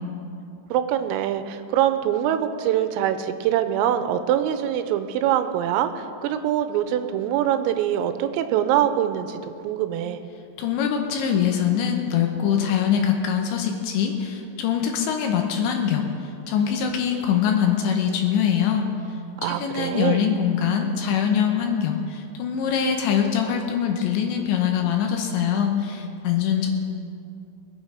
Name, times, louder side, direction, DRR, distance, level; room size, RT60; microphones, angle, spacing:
voice 1, 0.7-9.4 9.6-10.2 19.4-20.2, right 10 dB, 85° right, 10 dB, 3.3 m, -24 dB
voice 2, 10.6-16.1 16.5-18.9 19.4-26.7, left 8 dB, 80° left, 3 dB, 2.9 m, -23 dB
21.5 x 8.9 x 5.2 m, 2.6 s
omnidirectional pair, 5.9 m